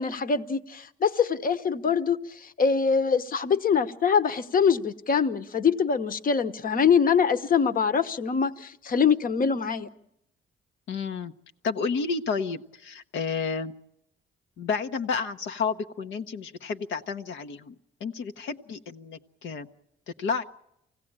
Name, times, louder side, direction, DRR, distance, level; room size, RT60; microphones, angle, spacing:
voice 1, 0.0-9.9, left 6 dB, 45° left, 1.1 m, -24 dB
voice 2, 10.9-11.3 11.6-13.7 14.6-17.7 18.0-19.7 20.2-20.4, left 5 dB, 75° left, 0.9 m, -31 dB
24.5 x 17.0 x 8.8 m
cardioid pair, 90°, 20 cm